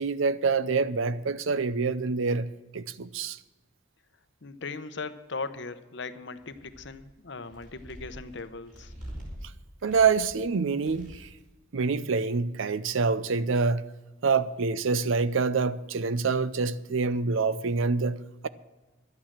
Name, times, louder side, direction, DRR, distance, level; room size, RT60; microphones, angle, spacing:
voice 1, 0.0-3.4 9.8-11.3 11.7-13.9 14.2-18.5, right 4 dB, 70° right, 0.6 m, -26 dB
voice 2, 4.4-8.9, left 4 dB, 60° left, 0.8 m, -38 dB
sound 1, 6.4-7.0 7.4-9.4 9.8-10.4 10.7-11.4, equal, 40° right, 3.7 m, -45 dB
12.0 x 8.8 x 7.4 m
head